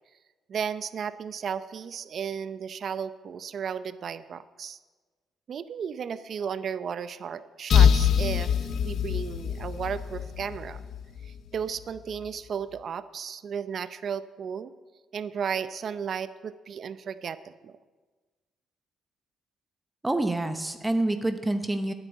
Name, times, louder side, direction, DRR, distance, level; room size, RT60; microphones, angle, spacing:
voice 1, 0.5-4.8 5.5-10.8 11.3-14.7 15.1-17.8, right 7 dB, 55° right, 14 dB, 0.5 m, -34 dB
sound 1, 7.7-11.4, left 8 dB, 65° left, 0.6 m, -24 dB
voice 2, 20.0-21.9, right 2 dB, 15° right, 8 dB, 0.9 m, -27 dB
9.9 x 8.0 x 8.3 m, 1.3 s
cardioid pair, 90°, 0 cm